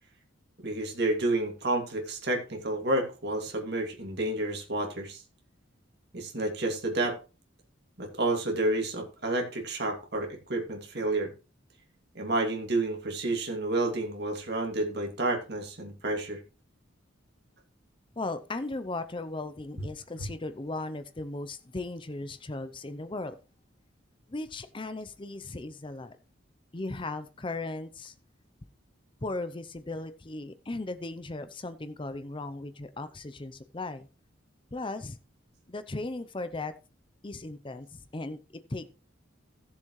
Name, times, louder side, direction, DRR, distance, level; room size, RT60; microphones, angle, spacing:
voice 1, 0.6-5.2 6.1-7.2 8.0-11.3 12.1-16.4 19.8-19.9, right 2 dB, 55° right, 2 dB, 2.5 m, -30 dB
voice 2, 18.2-23.4 24.3-26.2 26.7-28.1 29.2-34.1 34.7-35.2 35.7-36.7 37.2-38.4 38.7-38.9, left 2 dB, 25° left, 12 dB, 0.6 m, -37 dB
16.0 x 7.2 x 3.2 m, 0.32 s
head